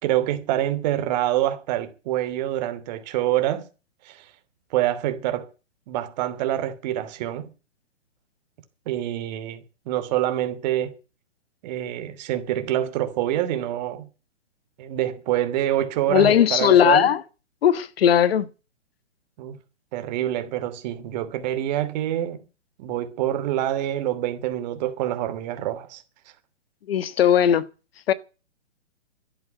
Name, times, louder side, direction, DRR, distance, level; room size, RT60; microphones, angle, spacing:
voice 1, 0.0-3.6 4.0-4.2 4.7-5.5 5.9-7.5 8.9-10.9 11.6-14.1 14.8-17.1 19.4-19.6 19.9-22.4 22.8-26.0, right 13 dB, 35° right, 2.8 m, -26 dB
voice 2, 16.1-17.2 17.6-18.5 26.9-27.6 28.1-28.2, left 9 dB, 55° left, 1.5 m, -18 dB
12.5 x 10.5 x 8.0 m
hypercardioid pair, 140°, 36 cm